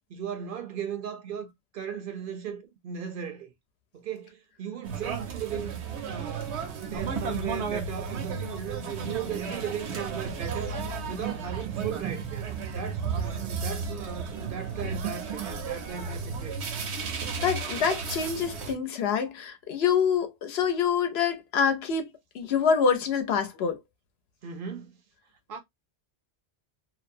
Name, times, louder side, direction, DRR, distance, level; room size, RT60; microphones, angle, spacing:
voice 1, 0.1-3.5 3.9-6.5 6.8-10.8 11.0-12.5 12.7-16.6 24.4-25.0 25.5-25.6, right 7 dB, 60° right, 0.7 m, -37 dB
sound 1, 4.8-18.7, right 5 dB, 90° right, 1.0 m, -33 dB
voice 2, 17.4-22.1 22.3-23.8, left 6 dB, 70° left, 0.8 m, -26 dB
2.6 x 2.0 x 2.5 m
omnidirectional pair, 1.1 m